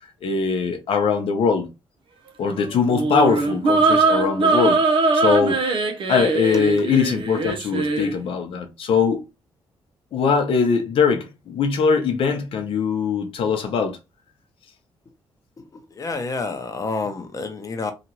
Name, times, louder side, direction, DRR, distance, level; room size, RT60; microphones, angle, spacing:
voice 1, 0.2-1.7 2.4-4.8 5.1-5.6 6.1-9.2 10.1-14.0, left 5 dB, 75° left, 0.7 m, -21 dB
sound 1, 2.9-8.1, right 3 dB, 65° right, 0.7 m, -21 dB
voice 2, 15.6-17.9, left 3 dB, 35° left, 0.7 m, -29 dB
2.9 x 2.4 x 2.9 m
cardioid pair, 75°, 9 cm